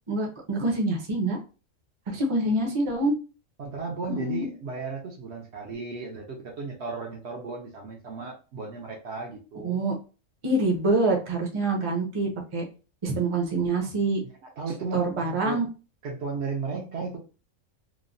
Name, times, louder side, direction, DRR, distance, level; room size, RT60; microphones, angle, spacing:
voice 1, 0.1-1.4 2.1-3.1 4.1-4.5 9.6-9.9 10.4-12.6 13.0-14.2 14.9-15.7, right 2 dB, 35° right, 0 dB, 0.5 m, -26 dB
voice 2, 3.6-9.8 14.6-15.6 16.0-17.2, right 4 dB, 65° right, 1 dB, 0.8 m, -35 dB
3.0 x 2.1 x 2.5 m, 0.34 s
omnidirectional pair, 1.4 m